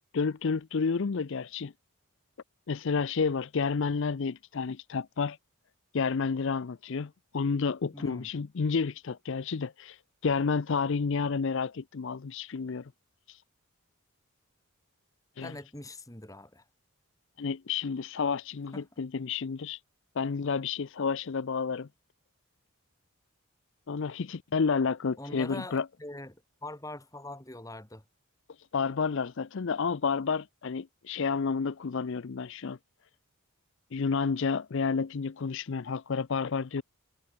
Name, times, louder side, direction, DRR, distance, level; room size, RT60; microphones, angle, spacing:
voice 1, 0.1-1.7 2.7-5.4 5.9-12.9 13.3-13.4 15.4-15.5 17.4-19.8 20.2-21.9 23.9-25.9 28.7-32.8 33.9-36.8, left 5 dB, 55° left, 0.5 m, -30 dB
voice 2, 7.9-8.3 15.4-16.6 18.7-18.9 25.2-28.0, left 1 dB, 15° left, 3.5 m, -43 dB
head